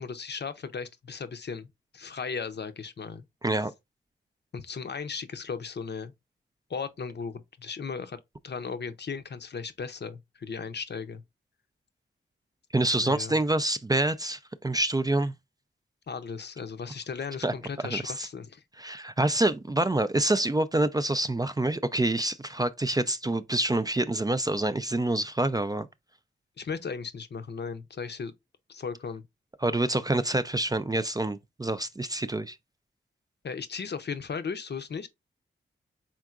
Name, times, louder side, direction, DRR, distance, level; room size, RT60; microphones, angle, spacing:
voice 1, 0.0-3.2 4.5-6.1 6.7-11.2 13.0-13.4 16.1-18.6 26.6-28.3 28.7-29.2 33.4-35.1, left 5 dB, 55° left, 0.7 m, -36 dB
voice 2, 12.7-15.3 17.4-17.5 17.9-18.0 18.8-25.9 29.6-32.6, right 2 dB, 20° right, 0.4 m, -26 dB
4.4 x 3.7 x 2.4 m
cardioid pair, 50°, 21 cm